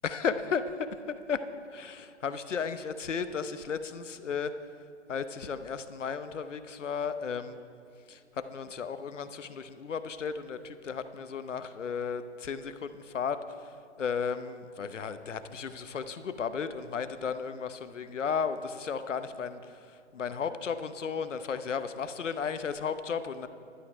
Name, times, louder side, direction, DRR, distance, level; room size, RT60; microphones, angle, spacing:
voice 1, 0.0-1.4 1.7-4.5 5.1-7.6 8.1-13.4 14.0-19.6 19.9-23.5, left 6 dB, 90° left, 11 dB, 0.9 m, -34 dB
11.5 x 11.5 x 5.0 m, 2.3 s
hypercardioid pair, 140°, 36 cm